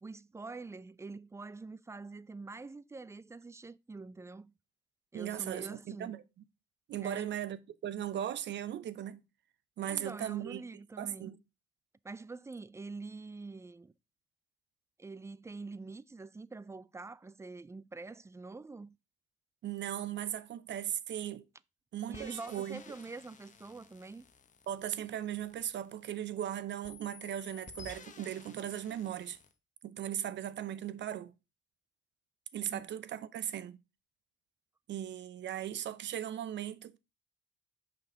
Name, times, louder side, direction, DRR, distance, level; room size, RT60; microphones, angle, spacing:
voice 1, 0.0-4.5 5.1-6.2 7.0-7.3 9.9-11.4 12.0-13.9 15.0-18.9 22.1-24.3 32.7-32.8, right 3 dB, 15° right, 0.4 m, -45 dB
voice 2, 5.1-6.2 6.9-9.2 9.8-10.6 11.0-11.4 19.6-21.4 21.9-22.8 24.7-29.4 29.8-31.3 32.5-33.8 34.9-37.0, right 11 dB, 65° right, 0.7 m, -38 dB
sound 1, 22.1-26.4 26.8-29.5, left 5 dB, 40° left, 1.0 m, -54 dB
6.8 x 5.3 x 3.9 m
cardioid pair, 90°, 20 cm